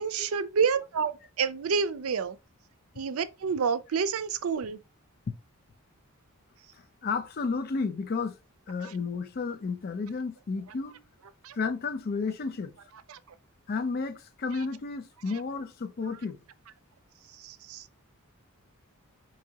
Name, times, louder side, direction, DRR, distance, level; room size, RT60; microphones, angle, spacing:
voice 1, 0.0-2.4 3.0-4.8 11.4-11.6 13.1-13.2 17.4-17.8, right 6 dB, 70° right, 0.4 m, -29 dB
voice 2, 7.0-8.4 8.7-11.0 11.5-12.7 13.7-16.4, left 4 dB, 45° left, 0.4 m, -32 dB
4.6 x 2.9 x 2.8 m
head